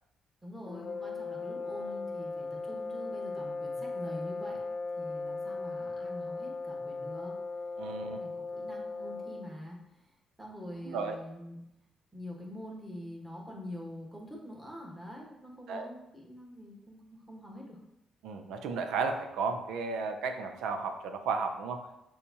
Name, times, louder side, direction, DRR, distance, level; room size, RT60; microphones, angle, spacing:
voice 1, 0.4-4.6 5.0-7.3 8.0-11.6 12.1-17.8, left 1 dB, 5° right, -2 dB, 1.3 m, -45 dB
sound 1, 0.6-9.6, left 3 dB, 60° left, 0.5 m, -38 dB
voice 2, 7.8-8.2 10.8-11.2 15.7-15.9 18.2-21.8, right 4 dB, 90° right, 6 dB, 0.5 m, -33 dB
6.8 x 2.4 x 2.8 m, 0.86 s
cardioid pair, 90°, 0 cm